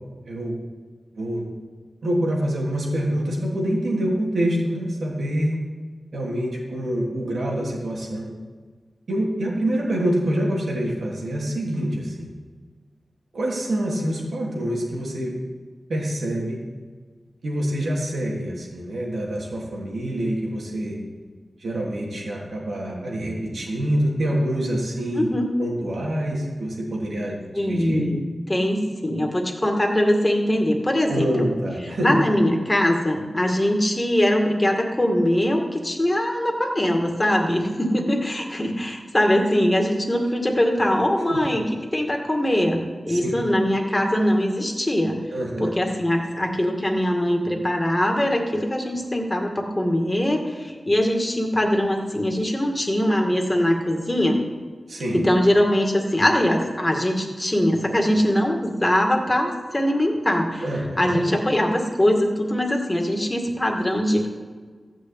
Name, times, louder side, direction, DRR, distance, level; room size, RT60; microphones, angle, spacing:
voice 1, 0.2-0.5 1.1-1.4 2.0-5.6 6.1-8.3 9.1-12.3 13.3-15.3 15.9-16.6 17.4-21.0 21.6-25.3 25.6-28.1 31.1-32.2 41.3-41.4 43.1-43.3 45.3-45.7 54.9-55.2 60.6-61.2, right 1 dB, 80° right, -3 dB, 3.2 m, -26 dB
voice 2, 25.2-25.5 27.5-28.2 28.5-31.5 31.8-41.6 41.9-42.8 43.1-45.2 45.6-54.4 55.1-60.7 61.0-64.3, left 1 dB, 15° left, 2 dB, 2.0 m, -22 dB
14.0 x 6.2 x 8.8 m, 1.5 s
wide cardioid pair, 110°, 0 cm